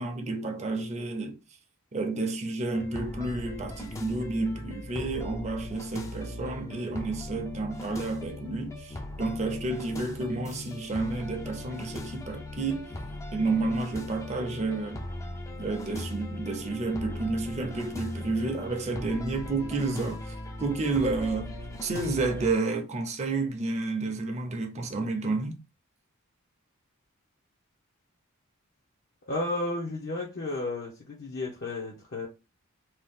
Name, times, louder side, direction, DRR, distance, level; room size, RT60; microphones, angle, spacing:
voice 1, 0.0-1.4 1.9-12.9 13.3-15.0 15.6-21.5 21.8-25.6, right 3 dB, 30° right, 0.6 m, -30 dB
sound 1, 2.7-22.6, left 1 dB, 15° left, 0.4 m, -39 dB
voice 2, 29.2-32.3, left 2 dB, 55° left, 0.7 m, -33 dB
2.7 x 2.3 x 3.5 m
head